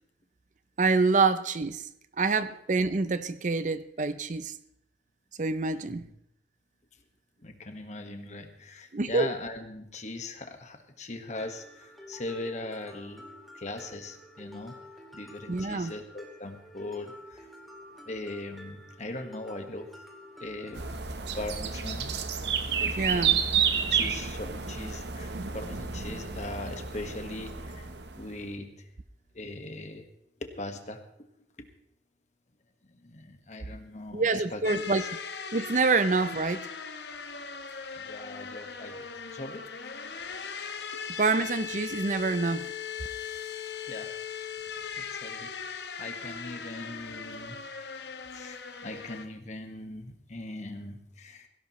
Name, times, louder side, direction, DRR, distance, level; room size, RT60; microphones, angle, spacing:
voice 1, 0.8-1.9 2.2-4.5 5.4-6.1 8.9-9.3 15.5-15.9 23.0-23.4 34.1-35.0 35.5-36.7 41.2-42.7, right 4 dB, 45° right, 0.6 m, -26 dB
voice 2, 7.4-13.2 13.5-14.7 15.1-17.5 18.0-19.9 20.4-20.8 21.3-22.1 22.8-23.6 23.9-27.9 28.2-28.7 29.3-30.0 30.6-31.0 32.9-35.1 38.0-39.0 39.3-39.6 43.9-44.1 45.0-47.6 48.3-51.5, left 2 dB, 40° left, 1.5 m, -40 dB
Mallet percussion, 11.4-21.0, left 1 dB, ahead, 2.5 m, -49 dB
sound 1, 20.7-28.4, right 7 dB, 75° right, 1.0 m, -30 dB
sound 2, 34.6-49.3, left 6 dB, 75° left, 1.2 m, -39 dB
17.0 x 17.0 x 3.2 m
head